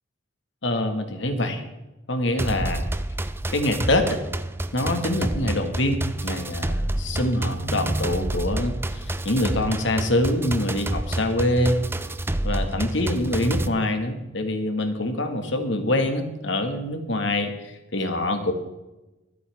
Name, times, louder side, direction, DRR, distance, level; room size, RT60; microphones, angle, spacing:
voice 1, 0.6-1.6 2.1-2.8 3.5-4.2 4.7-11.8 12.4-18.5, left 1 dB, 65° left, 6 dB, 1.9 m, -25 dB
sound 1, 2.4-13.7, right 1 dB, 10° right, 0.5 m, -29 dB
24.0 x 8.5 x 3.6 m, 1.0 s
head